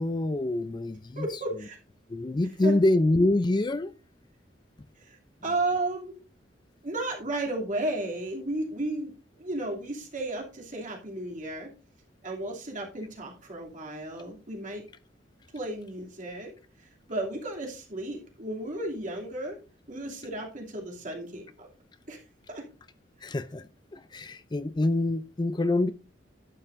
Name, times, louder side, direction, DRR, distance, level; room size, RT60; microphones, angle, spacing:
voice 1, 0.0-1.3 2.1-3.9 23.2-23.6 23.9-25.9, left 2 dB, 25° left, 0.4 m, -26 dB
voice 2, 1.2-1.8 2.6-2.7 5.0-6.1 6.8-9.1 9.4-11.7 12.2-14.8 15.5-16.5 16.8-19.6 19.9-21.7 22.1-22.6, right 2 dB, 45° right, 2.7 m, -34 dB
11.5 x 9.1 x 2.6 m
head